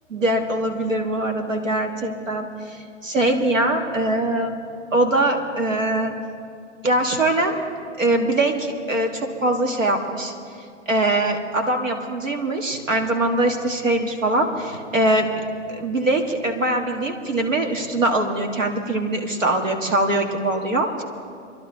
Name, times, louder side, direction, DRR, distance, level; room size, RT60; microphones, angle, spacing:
voice 1, 0.1-4.5 4.9-6.1 6.8-7.6 8.0-10.3 10.9-15.3 15.7-21.0, right 1 dB, 80° right, 3 dB, 1.8 m, -22 dB
25.0 x 11.5 x 3.9 m, 2.3 s
figure-of-eight pair, 115°, 38 cm